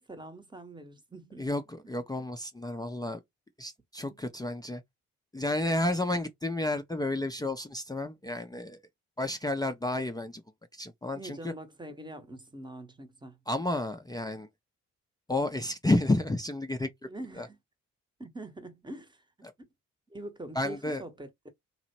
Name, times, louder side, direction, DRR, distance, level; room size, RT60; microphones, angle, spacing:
voice 1, 0.0-1.5 11.1-13.4 17.0-17.6 18.2-19.7 20.1-21.5, right 1 dB, 10° right, 0.9 m, -44 dB
voice 2, 1.4-3.2 3.6-4.8 5.3-8.8 9.2-10.4 10.7-11.5 13.5-14.5 15.3-16.9 17.4-17.5 20.6-21.0, left 2 dB, 10° left, 0.5 m, -31 dB
2.8 x 2.0 x 2.8 m
hypercardioid pair, 40°, 37 cm